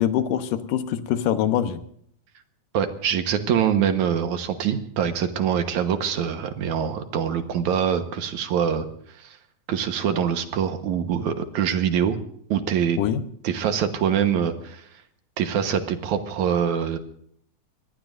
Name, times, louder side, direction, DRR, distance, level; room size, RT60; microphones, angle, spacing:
voice 1, 0.0-1.8 13.0-13.2, left 10 dB, 90° left, 10 dB, 2.7 m, -23 dB
voice 2, 2.7-8.9 9.2-9.4 9.7-12.2 12.5-13.0 13.4-14.9 15.4-17.0, right 8 dB, 70° right, 7 dB, 2.5 m, -24 dB
24.5 x 19.5 x 2.6 m, 0.65 s
omnidirectional pair, 3.7 m